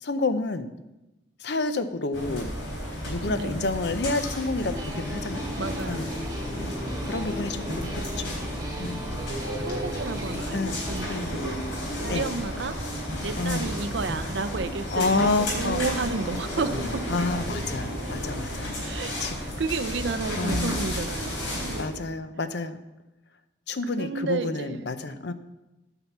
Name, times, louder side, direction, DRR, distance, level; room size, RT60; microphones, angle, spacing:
voice 1, 0.0-0.7 1.4-2.5 3.1-5.6 5.9-6.1 6.6-6.7 7.1-8.4 8.8-9.0 10.5-10.8 11.1-11.3 12.1-12.3 13.4-13.7 14.9-15.8 17.1-18.8 19.2-19.3 20.4-20.8 21.8-22.8 23.7-25.3, left 3 dB, 60° left, 11 dB, 0.6 m, -29 dB
sound 1, 2.1-21.8, equal, 90° left, 4.2 m, -32 dB
voice 2, 3.3-3.7 5.6-6.1 9.5-11.6 12.0-17.1 18.8-19.1 19.6-21.7 24.0-24.8, right 4 dB, 70° right, 12 dB, 0.5 m, -32 dB
sound 2, 4.6-11.2, equal, 20° right, 1.1 m, -38 dB
9.5 x 5.7 x 7.1 m, 1.0 s
head